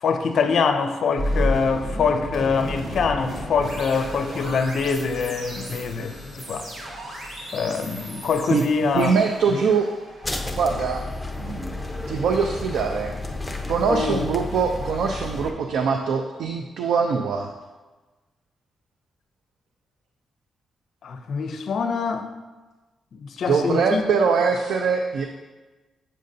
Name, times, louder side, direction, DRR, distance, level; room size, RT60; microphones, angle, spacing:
voice 1, 0.0-6.7 7.5-9.1 9.5-9.6 13.9-14.2 21.0-22.3 23.1-24.1, left 5 dB, 65° left, 7 dB, 0.4 m, -24 dB
sound 1, 1.2-12.2, equal, 60° right, 1.6 m, -33 dB
voice 2, 8.9-9.9 10.5-11.0 11.4-13.2 13.7-17.5 23.5-25.2, right 5 dB, 90° right, 4 dB, 0.4 m, -23 dB
sound 2, 10.2-15.5, left 2 dB, 10° left, 0.6 m, -32 dB
7.5 x 6.5 x 2.6 m, 1.3 s
cardioid pair, 120°, 0 cm